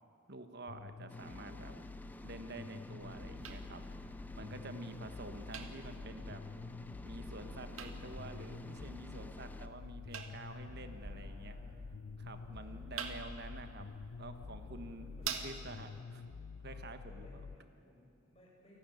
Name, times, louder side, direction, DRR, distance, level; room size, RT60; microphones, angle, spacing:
voice 1, 0.3-1.8 2.2-3.9 4.3-6.4 7.0-11.6 12.2-16.3 16.6-17.3, right 2 dB, 50° right, 8 dB, 1.4 m, -49 dB
sound 1, 0.7-17.6, left 5 dB, 70° left, 0.5 m, -49 dB
sound 2, 1.1-9.7, equal, 10° left, 0.7 m, -51 dB
sound 3, 3.0-16.0, right 6 dB, 85° right, 1.9 m, -49 dB
voice 2, 4.8-5.4 10.3-11.8 12.4-13.3 14.8-15.7 17.0-18.8, left 1 dB, 30° left, -3 dB, 7.1 m, -60 dB
28.5 x 12.0 x 9.3 m, 2.4 s
head